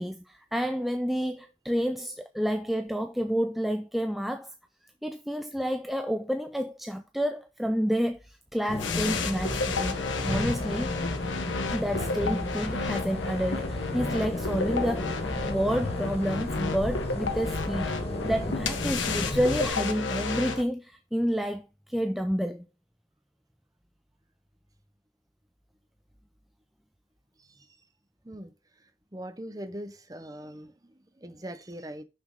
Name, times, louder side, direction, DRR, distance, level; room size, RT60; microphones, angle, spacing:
voice 1, 0.0-4.5 5.0-10.9 11.7-17.9 18.2-22.7, equal, ahead, 0.4 m, -29 dB
sound 1, 8.7-19.7, left 1 dB, 30° left, 1.7 m, -34 dB
sound 2, 8.8-20.6, left 4 dB, 75° left, 1.3 m, -32 dB
voice 2, 29.1-32.0, right 1 dB, 20° right, 0.8 m, -41 dB
6.2 x 6.1 x 5.3 m
head